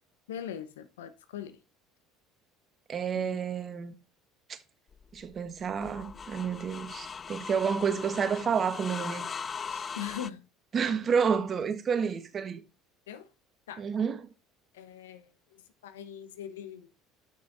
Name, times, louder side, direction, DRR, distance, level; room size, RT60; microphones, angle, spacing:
voice 1, 0.3-1.6 3.1-3.4 9.7-10.5 12.0-12.1 13.1-13.3 13.7-13.8 14.7-16.9, left 9 dB, 85° left, 0.9 m, -41 dB
voice 2, 2.9-3.9 4.5-4.6 5.1-9.2 10.7-12.6 13.8-14.3, right 6 dB, 40° right, 1.4 m, -30 dB
sound 1, 4.9-10.3, left 6 dB, 30° left, 0.4 m, -40 dB
8.5 x 6.2 x 3.9 m
hypercardioid pair, 75°, 0 cm